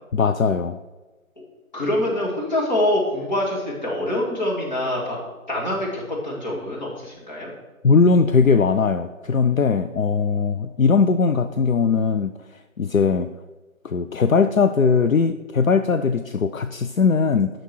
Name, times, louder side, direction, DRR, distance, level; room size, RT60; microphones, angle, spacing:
voice 1, 0.1-0.8 7.8-12.3 12.8-13.3 13.8-17.5, left 5 dB, 70° left, 9 dB, 0.5 m, -19 dB
voice 2, 1.7-5.2 5.5-7.5, left 1 dB, 30° left, -4 dB, 2.3 m, -25 dB
10.0 x 6.5 x 4.5 m, 1.2 s
figure-of-eight pair, 160°, 43 cm